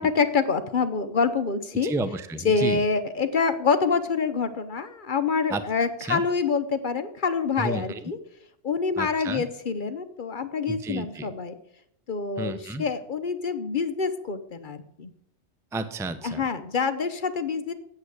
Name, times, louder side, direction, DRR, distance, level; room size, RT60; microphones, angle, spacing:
voice 1, 0.0-1.9 2.4-8.2 8.6-11.5 12.1-15.1 16.2-17.7, left 5 dB, 45° left, 10 dB, 0.8 m, -26 dB
voice 2, 1.8-2.8 5.5-5.6 6.1-6.2 7.6-8.0 9.0-9.4 10.7-11.3 12.4-12.8 15.7-16.4, right 2 dB, 5° right, 10 dB, 0.4 m, -31 dB
8.7 x 7.6 x 8.0 m, 0.74 s
omnidirectional pair, 1.4 m